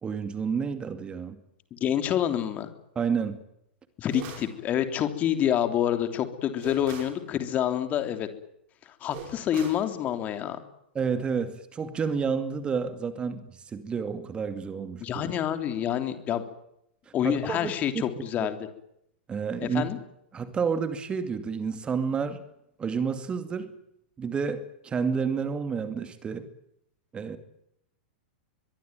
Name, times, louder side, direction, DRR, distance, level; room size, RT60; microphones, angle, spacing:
voice 1, 0.0-1.4 3.0-3.4 10.9-15.0 17.2-18.0 18.4-18.5 19.3-19.8 20.3-22.4 22.8-23.7 24.2-26.5 27.1-27.4, right 6 dB, 20° right, 2.4 m, -30 dB
voice 2, 1.7-2.7 4.0-8.3 9.0-10.6 15.0-16.4 17.1-18.6 19.7-20.0, left 10 dB, 30° left, 3.3 m, -27 dB
sound 1, 4.1-4.6 6.6-7.2 9.1-9.9, right 7 dB, 40° right, 6.3 m, -42 dB
24.0 x 23.0 x 9.3 m
figure-of-eight pair, 95°, 5 cm